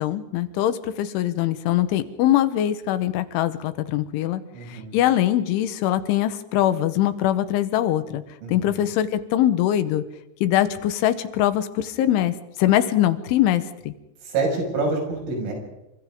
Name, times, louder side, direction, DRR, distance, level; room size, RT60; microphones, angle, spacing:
voice 1, 0.0-4.4 4.7-8.2 8.5-10.0 10.4-13.9, left 12 dB, 80° left, 12 dB, 3.5 m, -22 dB
voice 2, 4.5-5.0 8.4-8.8 14.2-15.5, right 3 dB, 90° right, 1 dB, 8.7 m, -27 dB
29.0 x 25.5 x 3.7 m, 0.91 s
omnidirectional pair, 5.6 m